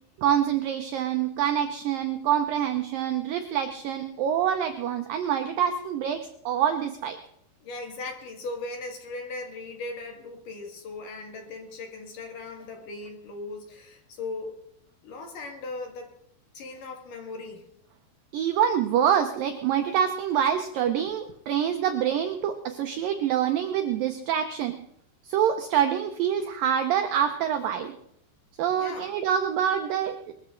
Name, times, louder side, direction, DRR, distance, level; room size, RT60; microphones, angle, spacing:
voice 1, 0.2-7.2 18.3-24.8 25.3-27.9 28.6-30.3, right 9 dB, 80° right, 7 dB, 2.0 m, -26 dB
voice 2, 7.6-14.5 15.0-16.1 16.5-17.7 28.8-29.2, left 3 dB, 55° left, 3 dB, 3.0 m, -38 dB
21.0 x 14.0 x 3.8 m, 0.73 s
omnidirectional pair, 5.0 m